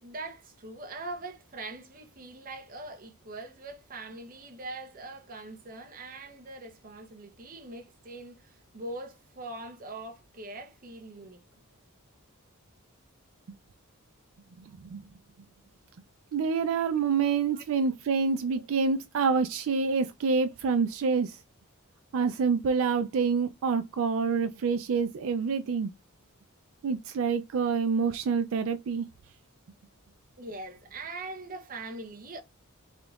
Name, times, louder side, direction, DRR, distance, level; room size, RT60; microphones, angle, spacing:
voice 1, 0.0-11.4 17.5-17.6 18.6-18.7 30.4-32.4, right 2 dB, 40° right, 0.7 m, -42 dB
voice 2, 14.6-15.0 16.3-21.4 22.1-25.9 26.8-29.1, right 5 dB, 65° right, 0.4 m, -27 dB
3.9 x 3.4 x 2.3 m
head